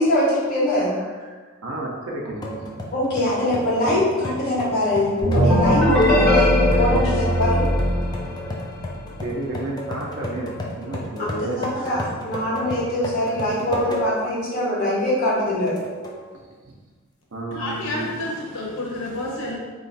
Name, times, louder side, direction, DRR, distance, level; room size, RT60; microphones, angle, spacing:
voice 1, 0.0-0.9 2.9-7.6 11.5-15.7, left 1 dB, 50° left, -7 dB, 1.4 m, -22 dB
voice 2, 0.9-1.3 1.6-2.6 6.7-7.1 9.2-10.5 10.8-11.6 16.7-16.8 17.3-18.1, right 2 dB, 85° right, -2 dB, 0.7 m, -31 dB
sound 1, 2.4-14.3 14.8-14.9 15.7-16.2, left 1 dB, 20° left, 0.4 m, -34 dB
sound 2, 5.2-8.9, left 1 dB, ahead, 1.2 m, -19 dB
voice 3, 17.5-19.6, left 1 dB, 75° left, -3 dB, 0.9 m, -29 dB
3.1 x 2.4 x 4.0 m, 1.4 s
head